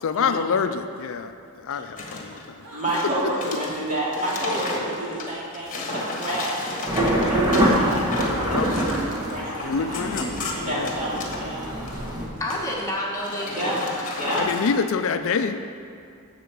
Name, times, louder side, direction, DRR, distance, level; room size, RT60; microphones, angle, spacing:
voice 1, 0.0-1.3 1.6-2.6 8.3-8.7 9.6-10.3 10.6-10.9 14.3-15.7, left 5 dB, 60° left, 9 dB, 0.4 m, -26 dB
sound 1, 2.0-2.4 2.8-11.4 11.8-12.1 12.4-12.9 13.2-14.7, left 2 dB, 35° left, 1.5 m, -34 dB
sound 2, 2.6-2.9 4.4-4.7 5.9-6.2 8.0-8.2 9.8-10.0 11.6-12.0, right 1 dB, 70° right, 1.7 m, -43 dB
voice 2, 2.7-10.0 10.5-11.7 11.9-12.0 13.5-13.7 14.1-14.5, right 1 dB, 35° right, -7 dB, 2.8 m, -30 dB
sound 3, 6.9-12.3, equal, 20° right, 1.6 m, -25 dB
voice 3, 12.4-14.2, left 1 dB, 15° left, -4 dB, 1.6 m, -30 dB
8.2 x 6.7 x 7.7 m, 2.3 s
head